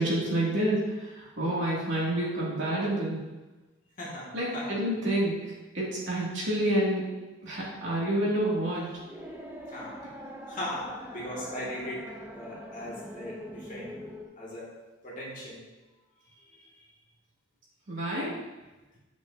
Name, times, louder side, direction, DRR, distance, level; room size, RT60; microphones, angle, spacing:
voice 1, 0.0-3.2 4.3-5.3 5.7-7.1 7.4-8.9 17.9-18.3, right 1 dB, 65° right, -6 dB, 2.7 m, -28 dB
voice 2, 4.0-4.8 9.7-10.2 10.4-14.0 14.4-14.8 15.0-15.6 16.4-16.9, left 1 dB, 40° left, -6 dB, 2.3 m, -39 dB
sound 1, 8.4-14.3, equal, 10° right, 0.8 m, -43 dB
8.2 x 7.8 x 2.8 m, 1.1 s
head